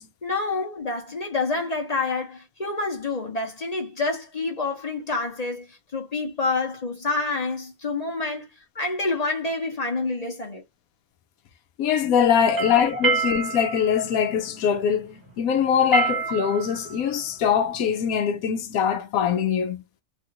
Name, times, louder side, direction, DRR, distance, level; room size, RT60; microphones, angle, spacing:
voice 1, 0.2-8.5 8.7-10.6 12.5-12.7, left 3 dB, 35° left, 0.8 m, -28 dB
voice 2, 11.8-19.8, left 8 dB, 80° left, 1.0 m, -22 dB
sound 1, 12.4-18.1, right 5 dB, 15° right, 1.0 m, -29 dB
3.3 x 2.4 x 2.8 m
omnidirectional pair, 1.5 m